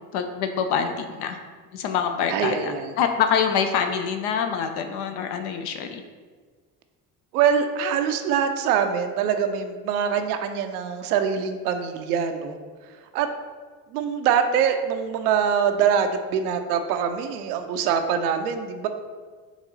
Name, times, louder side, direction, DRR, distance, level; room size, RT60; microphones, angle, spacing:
voice 1, 0.1-1.4 1.7-6.0, left 7 dB, 60° left, 6 dB, 0.6 m, -25 dB
voice 2, 2.3-2.9 7.3-12.6 13.1-13.3 13.9-18.9, right 7 dB, 80° right, 7 dB, 0.5 m, -24 dB
4.0 x 3.0 x 3.9 m, 1.5 s
hypercardioid pair, 60°, 45 cm